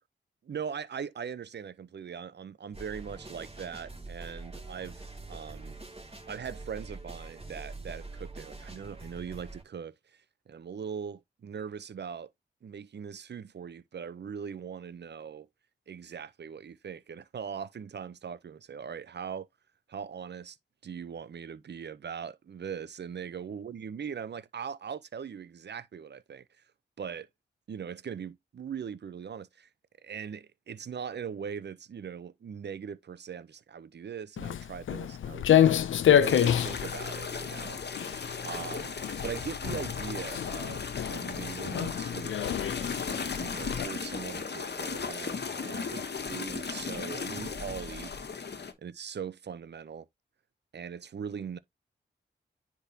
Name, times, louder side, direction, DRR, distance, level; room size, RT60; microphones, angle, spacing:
voice 1, 0.4-5.8 6.3-9.9 10.5-12.3 12.6-15.5 15.9-19.5 19.9-20.6 20.8-26.5 27.0-27.3 27.7-29.7 30.0-37.8 38.4-39.0 39.2-42.6 43.3-48.1 48.8-50.1 50.7-51.6, right 7 dB, 60° right, 0.6 m, -40 dB
sound 1, 2.7-9.6, right 3 dB, 30° right, 2.8 m, -44 dB
Walk footsteps, 34.4-43.8, left 10 dB, 75° left, 0.4 m, -28 dB
sound 2, 36.2-48.7, left 5 dB, 55° left, 1.1 m, -36 dB
9.7 x 3.6 x 2.8 m
cardioid pair, 45°, 20 cm